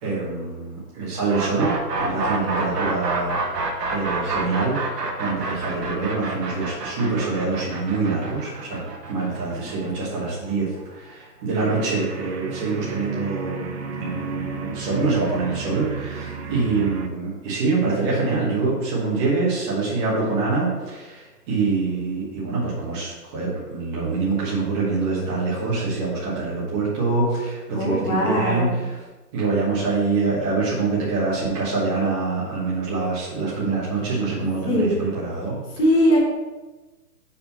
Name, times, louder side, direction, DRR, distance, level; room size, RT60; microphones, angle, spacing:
voice 1, 0.0-4.8 5.2-13.7 14.0-29.0 29.3-35.6, right 3 dB, 15° right, -7 dB, 1.3 m, -25 dB
sound 1, 1.3-11.1, right 3 dB, 75° right, 1.6 m, -28 dB
sound 2, 11.5-17.1, right 5 dB, 45° right, 0.5 m, -33 dB
voice 2, 27.7-28.8 34.7-35.0 35.8-36.2, equal, 20° left, -3 dB, 1.3 m, -21 dB
5.1 x 4.9 x 5.5 m, 1.2 s
hypercardioid pair, 160°, 49 cm